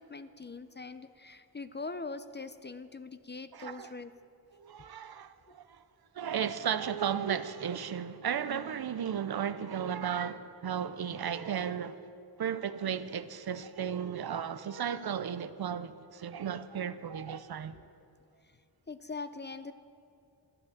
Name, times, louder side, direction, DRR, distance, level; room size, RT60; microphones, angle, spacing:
voice 1, 0.0-4.1 17.7-17.9 18.9-19.7, left 3 dB, 25° left, 0.5 m, -42 dB
voice 2, 3.5-3.9 4.5-5.8 6.1-12.0 12.4-17.8, right 8 dB, 60° right, 0.6 m, -34 dB
12.5 x 9.7 x 7.2 m
wide cardioid pair, 75°, 43 cm